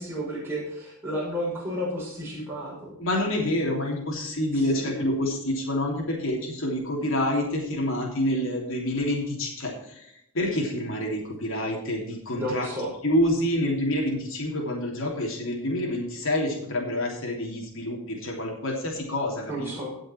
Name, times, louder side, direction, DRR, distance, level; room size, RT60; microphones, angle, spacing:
voice 1, 0.0-3.0 4.6-5.3 12.4-12.9 19.5-20.0, equal, 10° right, -5 dB, 5.6 m, -32 dB
voice 2, 3.0-12.7 13.0-19.7, left 1 dB, 60° left, -1 dB, 3.2 m, -27 dB
17.5 x 6.4 x 4.5 m, 0.76 s
head